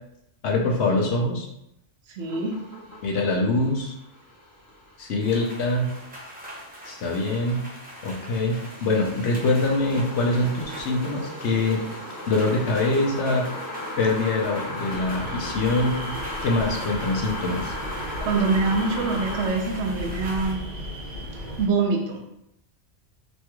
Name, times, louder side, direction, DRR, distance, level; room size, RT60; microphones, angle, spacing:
voice 1, 0.4-1.5 3.0-3.9 5.0-5.9 6.8-7.6 8.0-11.8 12.3-13.5 14.0-17.7, left 2 dB, 70° left, 1 dB, 0.9 m, -24 dB
voice 2, 2.1-2.5 18.2-20.6 21.6-22.2, right 4 dB, 75° right, 1 dB, 0.9 m, -24 dB
sound 1, 2.2-19.5, left 1 dB, 15° left, 1.1 m, -37 dB
sound 2, 5.2-20.5, equal, 10° right, 0.5 m, -42 dB
sound 3, 14.9-21.7, equal, 45° right, 1.1 m, -36 dB
3.2 x 3.0 x 2.3 m, 0.80 s
omnidirectional pair, 1.2 m